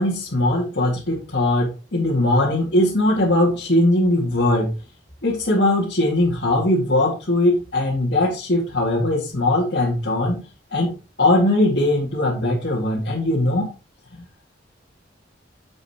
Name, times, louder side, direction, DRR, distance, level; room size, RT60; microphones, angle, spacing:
voice 1, 0.0-4.7 5.2-10.4 10.7-13.7, left 1 dB, 65° left, -5 dB, 2.2 m, -20 dB
9.3 x 7.8 x 3.0 m, 0.32 s
head